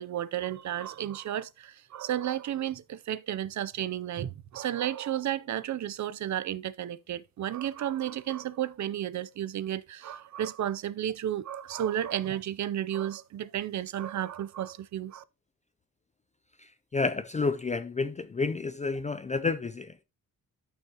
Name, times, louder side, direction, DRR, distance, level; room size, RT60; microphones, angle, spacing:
voice 1, 0.0-15.2, right 11 dB, 55° right, 0.6 m, -33 dB
voice 2, 16.9-20.0, left 4 dB, 20° left, 0.4 m, -30 dB
13.0 x 5.7 x 2.9 m
wide cardioid pair, 170°, 35 cm